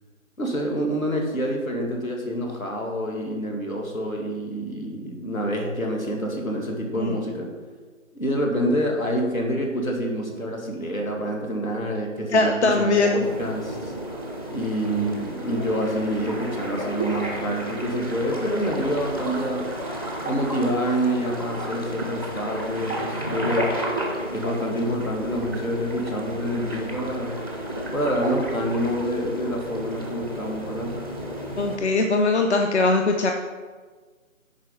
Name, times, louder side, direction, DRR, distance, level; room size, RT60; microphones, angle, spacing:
voice 1, 0.4-7.5 8.1-13.9 14.5-19.7 20.2-23.7 24.3-27.4 27.9-31.0, equal, 85° left, 0 dB, 2.3 m, -27 dB
voice 2, 12.3-13.2 31.6-33.3, left 3 dB, 55° left, 3 dB, 0.8 m, -21 dB
sound 1, 13.2-31.8, right 1 dB, 20° left, 0.6 m, -32 dB
9.0 x 4.9 x 5.6 m, 1.4 s
figure-of-eight pair, 160°, 40 cm